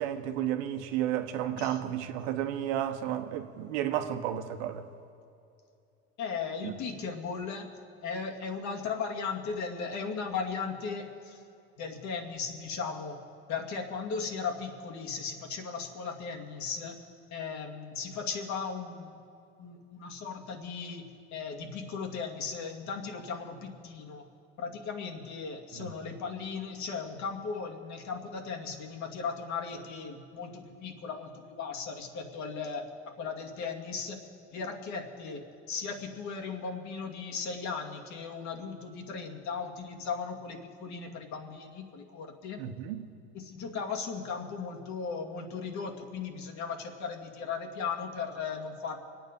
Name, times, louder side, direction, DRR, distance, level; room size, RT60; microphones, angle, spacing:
voice 1, 0.0-4.9 6.6-6.7 25.7-25.9 42.6-43.1, right 11 dB, 70° right, 1.3 m, -32 dB
voice 2, 6.2-7.7 8.0-11.4 11.8-13.2 13.5-17.0 17.3-19.1 19.6-24.3 24.6-32.9 33.2-34.2 34.5-42.6 43.3-49.0, left 5 dB, 50° left, 2.4 m, -37 dB
24.0 x 9.2 x 5.3 m
hypercardioid pair, 85°, 36 cm